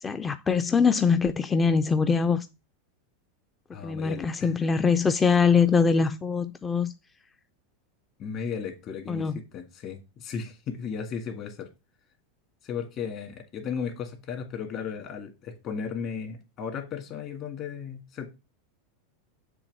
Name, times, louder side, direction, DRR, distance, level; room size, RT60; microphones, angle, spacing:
voice 1, 0.0-2.5 3.8-6.9 9.1-9.4, left 5 dB, 15° left, 0.4 m, -23 dB
voice 2, 3.7-4.6 8.2-11.7 12.6-18.3, left 6 dB, 40° left, 1.8 m, -35 dB
6.9 x 3.1 x 5.3 m
supercardioid pair, 125°, 0 cm